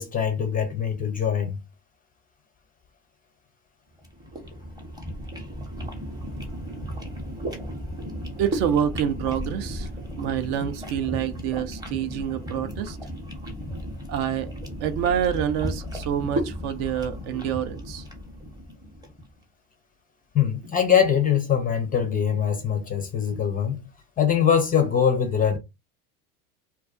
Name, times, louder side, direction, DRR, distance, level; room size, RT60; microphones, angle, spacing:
voice 1, 0.0-1.6 20.3-23.8 24.2-25.6, left 8 dB, 20° left, 0.4 m, -22 dB
sound 1, 4.0-19.2, equal, 10° right, 0.7 m, -34 dB
voice 2, 8.4-9.9 10.2-13.0 14.1-14.5 14.8-18.0, right 9 dB, 55° right, 0.5 m, -27 dB
2.3 x 2.2 x 2.4 m
hypercardioid pair, 85°, 45 cm